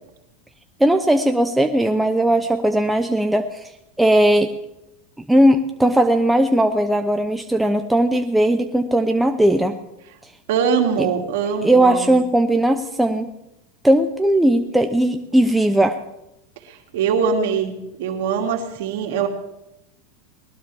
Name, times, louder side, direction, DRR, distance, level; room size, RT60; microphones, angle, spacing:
voice 1, 0.8-3.7 4.0-4.5 5.3-9.8 11.0-11.1 11.6-13.3 13.8-16.0, right 1 dB, 5° right, 5 dB, 0.7 m, -18 dB
voice 2, 10.5-12.2 16.6-19.3, right 6 dB, 75° right, 3 dB, 2.4 m, -22 dB
20.0 x 19.0 x 3.5 m, 0.88 s
supercardioid pair, 140°, 0 cm